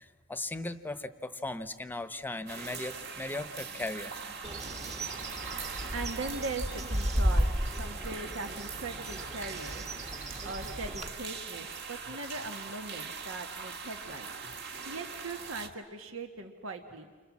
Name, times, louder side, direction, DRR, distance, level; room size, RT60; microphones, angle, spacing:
voice 1, 0.0-4.4, left 2 dB, 10° left, 11 dB, 0.9 m, -38 dB
sound 1, 2.5-15.7, right 5 dB, 55° right, 1.8 m, -42 dB
Bird, 4.4-11.1, equal, 35° right, 1.6 m, -34 dB
voice 2, 5.9-7.5 7.8-9.8 10.4-14.3 14.8-17.1, right 3 dB, 90° right, 5 dB, 1.6 m, -40 dB
29.5 x 25.5 x 7.4 m, 1.5 s
head